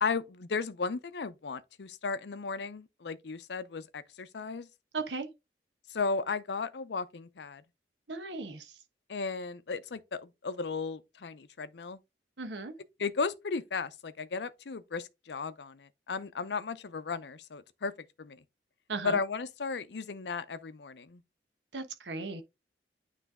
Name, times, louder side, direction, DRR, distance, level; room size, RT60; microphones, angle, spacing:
voice 1, 0.0-4.7 5.9-7.6 9.1-12.0 13.0-17.9 18.2-18.4 19.0-21.2, left 4 dB, 75° left, 0.6 m, -35 dB
voice 2, 4.9-5.3 8.1-8.7 12.4-12.7 18.9-19.2 21.7-22.4, right 3 dB, 85° right, 1.1 m, -36 dB
9.2 x 3.3 x 3.5 m
head